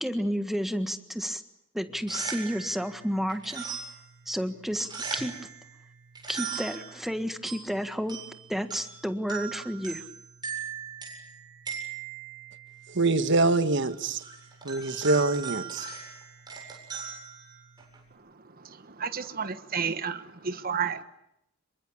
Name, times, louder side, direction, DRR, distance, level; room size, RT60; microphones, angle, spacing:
voice 1, 0.0-1.4 1.7-3.6 4.3-5.3 6.3-8.2 8.5-10.0, equal, ahead, 1.6 m, -31 dB
sound 1, 1.9-18.1, right 6 dB, 20° right, 7.9 m, -40 dB
voice 2, 12.9-14.2 14.6-15.8, right 3 dB, 60° right, 1.4 m, -24 dB
voice 3, 18.6-21.0, right 6 dB, 45° right, 1.4 m, -32 dB
27.0 x 23.5 x 8.4 m
head